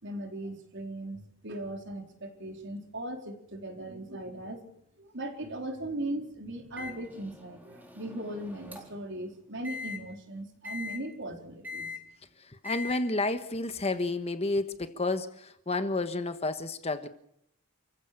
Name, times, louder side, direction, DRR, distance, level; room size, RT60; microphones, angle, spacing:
voice 1, 0.0-4.6 5.0-11.9, right 1 dB, 55° right, 4 dB, 4.1 m, -38 dB
Microwave oven, 6.8-9.1 9.6-10.0 10.6-11.0 11.6-12.0 12.6-13.0, left 4 dB, 10° right, 4.1 m, -41 dB
voice 2, 12.4-17.1, left 2 dB, 30° left, 10 dB, 1.3 m, -31 dB
29.0 x 15.5 x 6.8 m, 0.72 s
head